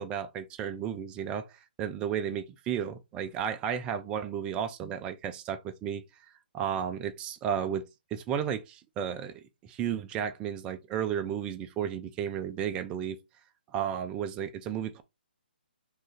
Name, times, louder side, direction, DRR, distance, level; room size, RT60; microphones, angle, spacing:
voice 1, 0.0-6.0 6.5-7.8 8.1-13.2 13.7-15.0, right 8 dB, 15° right, 0.4 m, -33 dB
3.1 x 2.4 x 3.8 m
hypercardioid pair, 145°, 6 cm